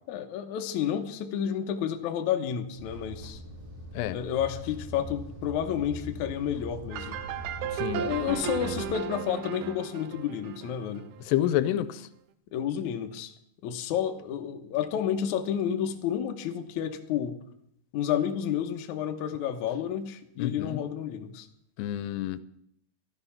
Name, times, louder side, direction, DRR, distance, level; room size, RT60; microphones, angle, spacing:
voice 1, 0.1-3.4 4.1-7.2 7.9-11.1 12.5-13.3 13.6-17.4 17.9-21.5, left 9 dB, 70° left, 5 dB, 2.0 m, -30 dB
sound 1, 2.8-8.9, left 1 dB, 45° right, 6.5 m, -42 dB
sound 2, 6.9-11.5, right 9 dB, 80° right, 2.4 m, -35 dB
voice 2, 7.7-8.0 11.3-12.1 20.4-20.8 21.8-22.4, left 12 dB, 85° left, 14 dB, 2.7 m, -28 dB
13.0 x 12.5 x 5.8 m, 0.72 s
omnidirectional pair, 4.7 m